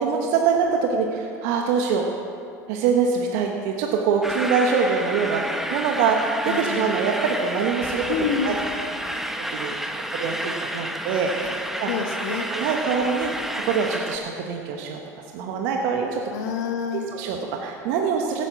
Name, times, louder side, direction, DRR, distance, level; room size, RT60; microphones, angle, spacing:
voice 1, 0.0-2.1 2.7-8.0 8.4-8.5 9.5-9.7 10.1-11.5 11.8-11.9 12.3-15.0 15.3-16.2 16.9-18.5, right 5 dB, 65° right, 2 dB, 1.3 m, -24 dB
sound 1, 4.2-14.2, right 1 dB, 5° right, 1.1 m, -30 dB
voice 2, 6.5-6.9 8.1-8.6 11.4-11.5 11.9-12.5 16.3-17.1, left 7 dB, 75° left, 4 dB, 1.2 m, -28 dB
16.0 x 9.0 x 6.1 m, 2.5 s
hypercardioid pair, 80°, 9 cm